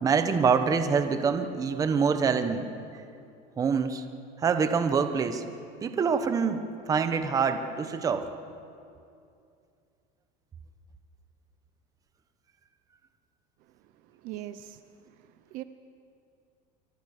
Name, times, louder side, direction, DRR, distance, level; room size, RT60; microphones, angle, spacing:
voice 1, 0.0-2.7 3.6-4.0 4.4-5.4 5.8-8.3, right 5 dB, 20° right, 8 dB, 1.2 m, -25 dB
voice 2, 14.2-14.8 15.5-15.6, right 13 dB, 50° right, 11 dB, 0.9 m, -39 dB
25.0 x 23.5 x 6.7 m, 2.5 s
cardioid pair, 170°, 17 cm